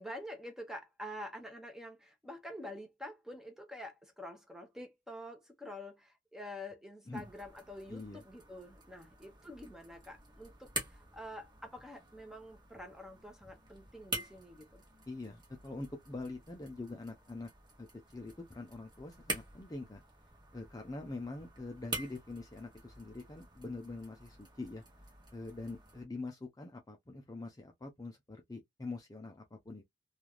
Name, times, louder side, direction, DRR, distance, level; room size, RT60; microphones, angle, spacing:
voice 1, 0.0-14.8, left 1 dB, 5° right, 0.8 m, -47 dB
sound 1, 7.1-26.0, right 2 dB, 25° right, 1.2 m, -47 dB
voice 2, 7.9-8.2 15.1-17.5 17.8-17.9 18.1-20.0 20.5-24.8 25.3-29.8, left 2 dB, 20° left, 0.5 m, -44 dB
3.2 x 2.4 x 2.2 m
head